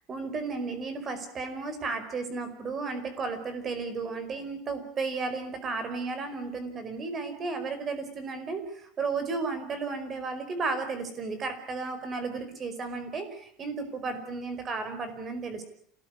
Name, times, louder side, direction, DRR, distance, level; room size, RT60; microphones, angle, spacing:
voice 1, 0.1-15.7, right 4 dB, 25° right, 10 dB, 5.0 m, -34 dB
28.0 x 18.5 x 9.8 m, 0.64 s
cardioid pair, 165°, 0 cm